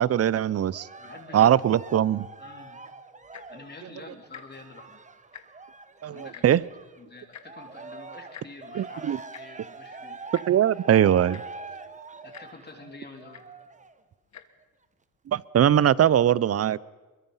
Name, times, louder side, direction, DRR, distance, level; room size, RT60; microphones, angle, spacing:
voice 1, 0.0-0.9 1.3-2.3 6.0-6.6 8.7-9.2 10.5-11.4 15.3-16.8, right 10 dB, 45° right, 21 dB, 0.6 m, -21 dB
Cheering, 0.7-7.0 7.4-14.0 14.6-14.7, right 3 dB, 20° right, 1.2 m, -44 dB
voice 2, 1.0-1.6 2.4-2.8 3.5-5.0 6.1-6.4 7.0-10.2 12.2-13.5, left 3 dB, 30° left, 2 dB, 3.6 m, -47 dB
Tick-tock, 3.2-3.6 4.3-4.4 4.8-4.9 5.2-5.7 6.3-6.4 7.3-7.5 8.3-8.5 9.3-9.4 10.3-10.5 11.0-11.1 11.3-11.6 12.3-12.5 13.3-13.4 14.2-14.4 15.1-15.2, left 9 dB, 50° left, 1.5 m, -45 dB
23.5 x 22.5 x 5.7 m, 1.2 s
cardioid pair, 100°, 35 cm